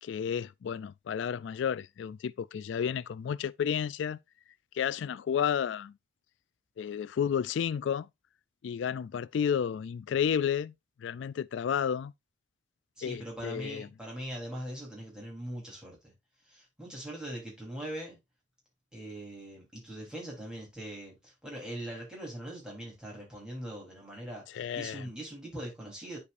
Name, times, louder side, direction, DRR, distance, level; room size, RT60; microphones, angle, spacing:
voice 1, 0.0-4.2 4.7-5.9 6.8-8.1 8.6-10.7 11.0-12.1 13.0-13.9 24.5-25.0, left 8 dB, 70° left, 0.3 m, -31 dB
voice 2, 13.0-16.1 16.4-18.2 18.9-26.2, right 1 dB, 5° right, 3.6 m, -41 dB
11.0 x 4.8 x 2.6 m
head